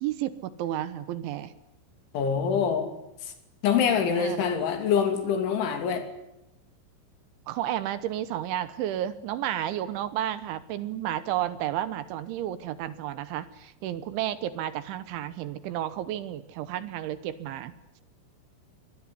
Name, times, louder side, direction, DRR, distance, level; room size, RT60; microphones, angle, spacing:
voice 1, 0.0-1.5 4.1-4.6 7.5-17.7, right 12 dB, 75° right, 14 dB, 3.2 m, -32 dB
voice 2, 2.1-2.9 3.6-6.1, left 7 dB, 70° left, 7 dB, 5.1 m, -25 dB
24.5 x 19.5 x 9.8 m, 0.88 s
omnidirectional pair, 5.9 m